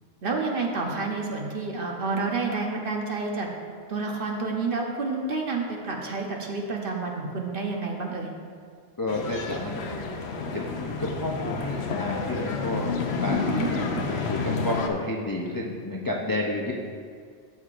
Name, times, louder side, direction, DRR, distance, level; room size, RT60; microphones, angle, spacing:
voice 1, 0.2-3.5 3.9-8.3 13.5-14.1, right 3 dB, 50° right, 0 dB, 1.0 m, -29 dB
voice 2, 9.0-10.0 10.3-13.5 14.1-16.7, left 2 dB, 30° left, -2 dB, 0.4 m, -31 dB
sound 1, 9.1-14.9, left 4 dB, 60° left, 0.9 m, -30 dB
13.0 x 6.5 x 2.5 m, 2.1 s
omnidirectional pair, 1.3 m